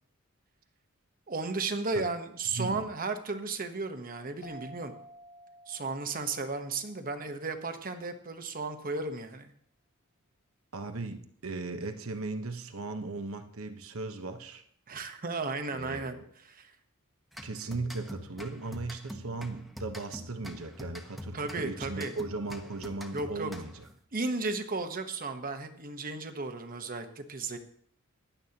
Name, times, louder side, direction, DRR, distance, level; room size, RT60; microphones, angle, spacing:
voice 1, 1.3-5.0 5.7-9.5 14.9-16.2 16.5-16.7 21.3-22.1 23.1-23.5 24.1-27.6, right 3 dB, 45° right, 7 dB, 1.1 m, -34 dB
voice 2, 2.5-2.9 10.7-14.6 15.7-16.2 17.4-23.9, right 3 dB, 80° right, 6 dB, 1.1 m, -37 dB
sound 1, 4.4-7.7, equal, 50° left, 2.2 m, -53 dB
sound 2, 17.3-24.0, left 1 dB, ahead, 1.1 m, -45 dB
16.0 x 11.0 x 2.9 m, 0.62 s
head